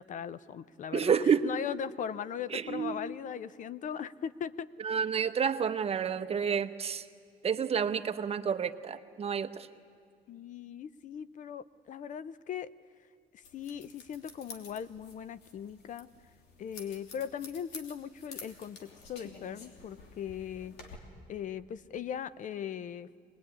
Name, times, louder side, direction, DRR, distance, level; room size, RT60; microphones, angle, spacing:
voice 1, 0.0-5.0 10.3-12.7 13.3-16.1 16.6-21.0 21.3-23.2, left 8 dB, 50° left, 17 dB, 0.6 m, -39 dB
voice 2, 0.9-1.5 2.5-2.9 4.8-7.0 7.4-9.7, right 7 dB, 35° right, 9 dB, 1.0 m, -29 dB
sound 1, 13.4-21.0, left 4 dB, 75° left, 3.0 m, -50 dB
24.5 x 20.0 x 9.9 m, 2.1 s
cardioid pair, 110°, 17 cm